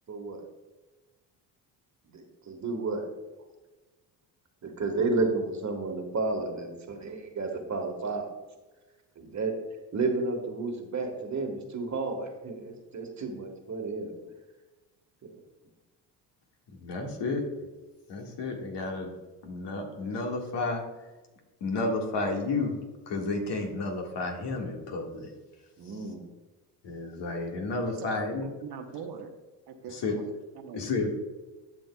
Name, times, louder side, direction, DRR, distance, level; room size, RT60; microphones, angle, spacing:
voice 1, 0.1-0.5 2.1-3.1 4.6-8.3 9.1-9.5 9.9-14.1 25.8-26.2, right 3 dB, 35° right, 4 dB, 1.5 m, -31 dB
voice 2, 16.8-17.4 18.1-19.1 19.4-20.8 21.6-22.8 23.1-25.3 26.8-28.5 29.9-30.2 30.7-31.1, left 3 dB, 60° left, 2 dB, 1.8 m, -31 dB
voice 3, 28.4-29.3 29.7-30.8, right 6 dB, 55° right, 5 dB, 1.1 m, -43 dB
11.5 x 6.2 x 2.3 m, 1.2 s
supercardioid pair, 75°, 46 cm